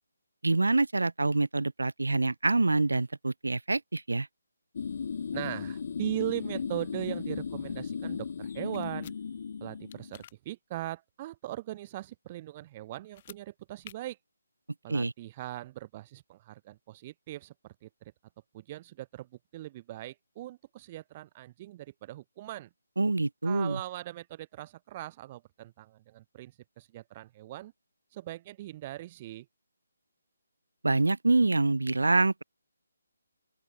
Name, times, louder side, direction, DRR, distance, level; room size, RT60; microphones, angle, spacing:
voice 1, 0.4-4.3 14.9-15.1 23.0-23.8 30.8-32.4, right 2 dB, 70° right, 0.3 m, -26 dB
sound 1, 4.7-10.2, left 6 dB, 45° left, 0.8 m, -36 dB
voice 2, 5.3-9.1 9.6-14.2 14.8-18.1 18.5-22.7 23.4-27.7 28.1-29.5, right 15 dB, 25° right, 3.0 m, -40 dB
sound 2, 8.7-9.2 9.9-10.3 13.0-13.4 13.8-13.9, left 11 dB, 30° left, 1.3 m, -50 dB
open air
figure-of-eight pair, 145°, 0 cm